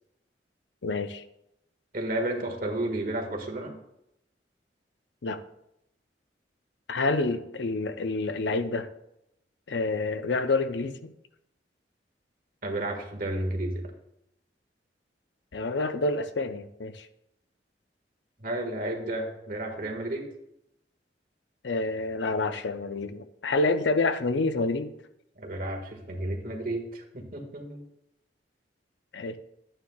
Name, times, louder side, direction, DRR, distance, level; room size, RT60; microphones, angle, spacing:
voice 1, 0.8-1.2 5.2-5.4 6.9-8.9 9.7-11.1 15.5-17.1 21.6-24.9 29.1-29.4, left 3 dB, 90° left, 10 dB, 0.6 m, -28 dB
voice 2, 1.9-3.7 12.6-13.9 18.4-20.3 25.4-27.8, right 1 dB, 50° right, 2 dB, 1.7 m, -32 dB
11.5 x 8.8 x 2.3 m, 0.81 s
head